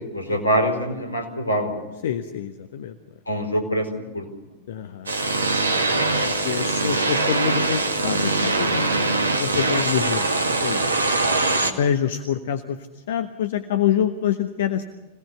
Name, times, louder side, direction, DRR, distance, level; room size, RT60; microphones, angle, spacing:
voice 1, 0.1-1.8 3.3-4.3 9.5-9.7 11.2-11.7, equal, 80° left, 6 dB, 4.5 m, -25 dB
voice 2, 2.0-3.0 4.7-5.1 6.2-10.9 11.6-14.8, left 9 dB, 60° left, 10 dB, 1.2 m, -26 dB
sound 1, 5.1-11.7, right 3 dB, 75° right, 2.1 m, -22 dB
26.0 x 18.0 x 6.9 m, 1.1 s
figure-of-eight pair, 90°, 0 cm